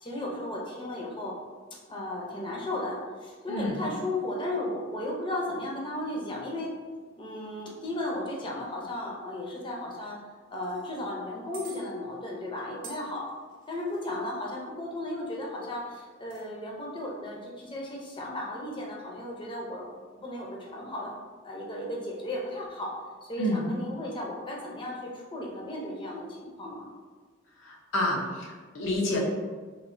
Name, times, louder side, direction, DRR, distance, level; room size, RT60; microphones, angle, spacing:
voice 1, 0.0-1.3 1.9-6.7 7.2-10.2 10.5-13.3 13.7-19.9 20.2-21.1 21.4-22.9 23.2-26.9, left 1 dB, 25° left, -2 dB, 0.5 m, -35 dB
sound 1, 10.5-10.9 11.5-11.8 12.8-14.1 16.1-16.4, right 4 dB, 70° right, 0.6 m, -47 dB
voice 2, 27.6-29.2, left 1 dB, 90° left, -2 dB, 0.6 m, -29 dB
3.0 x 2.4 x 2.5 m, 1.4 s
head